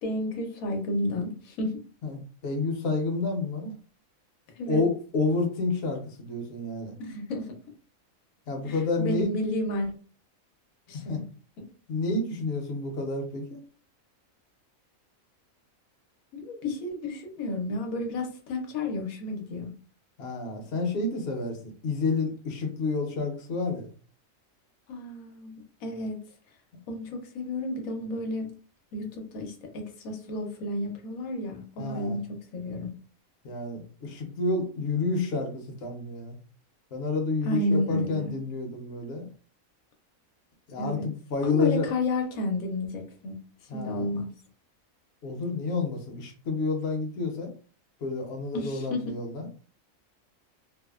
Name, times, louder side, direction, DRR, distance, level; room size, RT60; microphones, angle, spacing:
voice 1, 0.0-1.8 4.6-4.8 7.0-7.6 8.6-9.9 10.9-11.2 11.6-11.7 16.3-19.7 24.9-26.2 26.9-28.5 28.9-32.9 37.4-38.3 40.8-41.1 41.4-43.4 43.7-44.3 48.5-49.2, left 2 dB, 85° left, 3 dB, 1.1 m, -31 dB
voice 2, 2.0-3.7 4.7-6.9 8.5-9.3 10.9-11.2 11.9-13.6 20.2-23.9 31.8-32.2 33.4-36.4 36.9-39.3 40.7-41.9 43.7-44.1 45.2-47.5 48.0-49.5, left 3 dB, 60° left, 2 dB, 0.9 m, -29 dB
3.2 x 2.1 x 2.3 m, 0.41 s
omnidirectional pair, 1.4 m